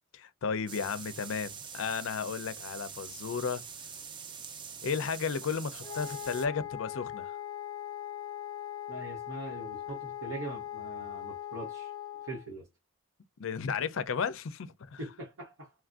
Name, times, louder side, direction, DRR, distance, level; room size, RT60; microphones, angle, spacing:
voice 1, 0.1-3.6 4.8-7.3 13.4-15.0, left 6 dB, 65° left, 0.5 m, -34 dB
sound 1, 0.7-6.5, right 6 dB, 25° right, 0.4 m, -44 dB
Wind instrument woodwind instrument, 5.8-12.5, left 11 dB, 20° left, 0.7 m, -40 dB
voice 2, 8.9-11.9 12.2-12.7 15.0-15.7, right 2 dB, 75° right, 0.7 m, -42 dB
3.2 x 2.5 x 2.3 m
head